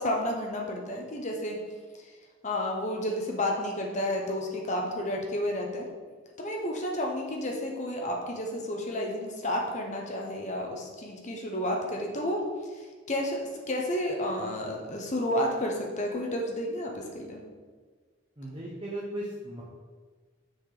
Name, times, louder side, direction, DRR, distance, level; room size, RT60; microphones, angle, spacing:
voice 1, 0.0-1.6 1.9-2.1 2.4-5.8 6.4-13.4 13.7-17.4, left 1 dB, 35° left, 0 dB, 1.0 m, -31 dB
voice 2, 18.4-19.6, right 1 dB, 25° right, -4 dB, 0.9 m, -37 dB
6.3 x 4.4 x 4.9 m, 1.5 s
head